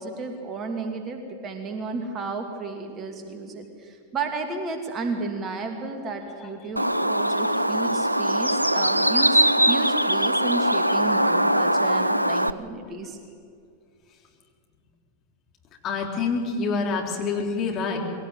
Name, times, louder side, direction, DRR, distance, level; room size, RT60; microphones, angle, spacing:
voice 1, 0.0-13.2, right 3 dB, 30° right, 4 dB, 2.5 m, -32 dB
Bird, 6.8-12.5, right 1 dB, 85° right, 0.5 m, -21 dB
voice 2, 15.8-18.0, left 4 dB, 35° left, 1 dB, 3.7 m, -27 dB
21.5 x 17.5 x 9.1 m, 2.3 s
figure-of-eight pair, 90°, 0 cm